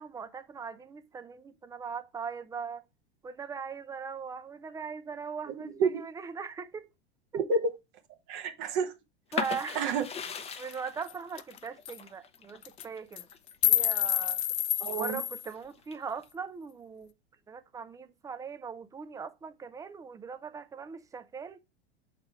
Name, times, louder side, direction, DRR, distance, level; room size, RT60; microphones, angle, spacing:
voice 1, 0.0-2.8 3.2-6.9 9.3-9.9 10.6-13.3 13.6-14.4 15.0-17.1 17.5-21.6, right 6 dB, 10° right, 0.6 m, -40 dB
voice 2, 5.5-6.0 7.3-7.8 8.3-8.9 9.7-10.0 14.8-15.2, right 4 dB, 45° right, 1.2 m, -29 dB
sound 1, 9.3-15.0 15.4-16.2, left 6 dB, 20° left, 0.8 m, -39 dB
sound 2, 10.7-10.8 11.1-11.2 11.4-11.6 11.8-12.0 12.6-12.8 13.2-15.5, left 11 dB, 75° left, 0.5 m, -28 dB
6.7 x 4.2 x 4.6 m
figure-of-eight pair, 90°, 33 cm